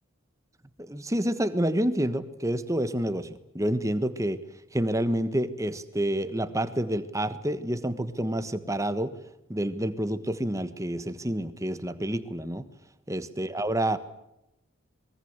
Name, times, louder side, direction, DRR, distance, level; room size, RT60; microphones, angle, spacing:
voice 1, 0.8-4.4 4.7-9.1 9.5-12.6 13.1-14.0, right 1 dB, 15° right, 12 dB, 1.4 m, -28 dB
26.0 x 22.5 x 8.1 m, 0.86 s
head